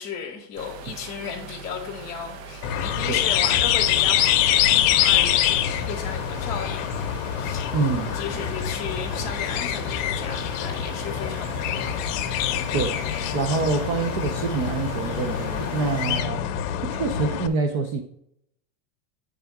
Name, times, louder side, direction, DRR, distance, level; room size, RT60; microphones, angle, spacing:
voice 1, 0.0-7.1 7.4-12.0, left 6 dB, 15° left, 0.8 m, -35 dB
sound 1, 0.6-16.2, right 3 dB, 60° right, 0.8 m, -40 dB
sound 2, 2.6-17.5, left 11 dB, 55° left, 0.7 m, -25 dB
voice 2, 7.7-8.5 12.7-16.4 16.8-18.0, right 4 dB, 35° right, 0.4 m, -26 dB
9.4 x 3.5 x 4.6 m
supercardioid pair, 170°, 46 cm